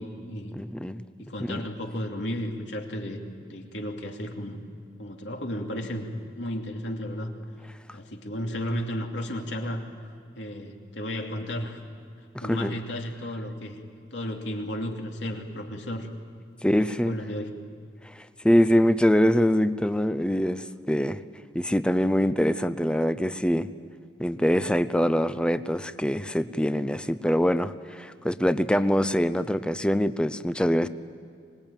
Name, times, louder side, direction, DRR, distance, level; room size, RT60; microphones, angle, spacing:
voice 1, 0.0-0.6 1.2-3.2 3.5-4.6 5.0-6.1 6.4-7.3 7.9-9.8 10.4-11.8 12.4-13.8 14.1-16.1 16.6-17.5, equal, 75° left, 2 dB, 2.8 m, -33 dB
voice 2, 0.5-1.0 1.5-1.6 12.4-12.8 16.6-17.1 18.4-21.2 21.5-23.7 24.2-30.9, equal, 5° left, 13 dB, 0.6 m, -24 dB
25.0 x 21.0 x 9.0 m, 2.4 s
head